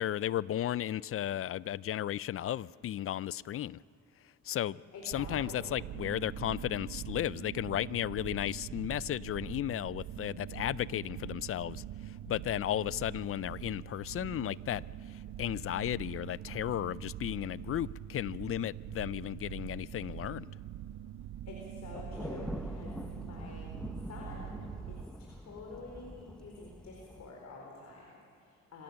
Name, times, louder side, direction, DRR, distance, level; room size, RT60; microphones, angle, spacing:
voice 1, 0.0-3.8 4.4-14.8 15.1-20.5, left 12 dB, 50° left, 0.4 m, -34 dB
voice 2, 4.9-5.7 21.5-23.7 24.1-24.6 24.9-28.8, left 3 dB, 65° left, 4.4 m, -48 dB
sound 1, 5.1-25.0, right 11 dB, 60° right, 0.6 m, -44 dB
Thunder, 21.9-27.3, equal, 5° left, 0.8 m, -44 dB
26.0 x 16.0 x 6.9 m
cardioid pair, 90°, 30 cm